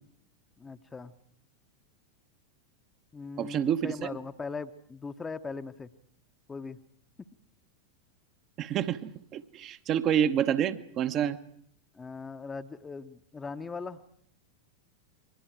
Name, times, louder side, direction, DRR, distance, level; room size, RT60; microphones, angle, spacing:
voice 1, 0.6-1.1 3.1-5.9 6.5-6.8 12.0-14.0, left 4 dB, 15° left, 10 dB, 1.0 m, -39 dB
voice 2, 3.4-4.2 8.6-11.4, right 9 dB, 35° right, 9 dB, 1.1 m, -28 dB
28.5 x 23.0 x 4.7 m, 0.67 s
figure-of-eight pair, 90°, 0 cm